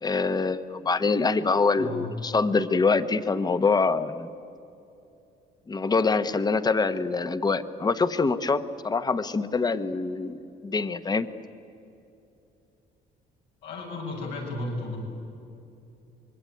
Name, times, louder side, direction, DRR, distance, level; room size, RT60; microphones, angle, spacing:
voice 1, 0.0-4.3 5.7-11.3, left 4 dB, 25° left, 12 dB, 1.2 m, -25 dB
voice 2, 1.8-2.1 13.6-15.0, left 2 dB, 85° left, 0 dB, 7.4 m, -34 dB
25.5 x 22.5 x 9.4 m, 2.8 s
cardioid pair, 110°, 17 cm